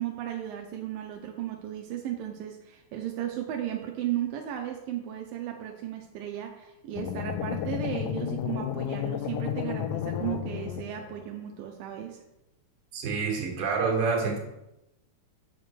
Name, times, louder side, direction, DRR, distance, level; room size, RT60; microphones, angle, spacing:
voice 1, 0.0-12.2, right 11 dB, 85° right, 2 dB, 2.5 m, -35 dB
sound 1, 7.0-11.2, left 10 dB, 80° left, 2.1 m, -32 dB
voice 2, 12.9-14.4, right 5 dB, 65° right, 0 dB, 2.9 m, -27 dB
7.6 x 6.8 x 4.5 m, 0.91 s
omnidirectional pair, 4.0 m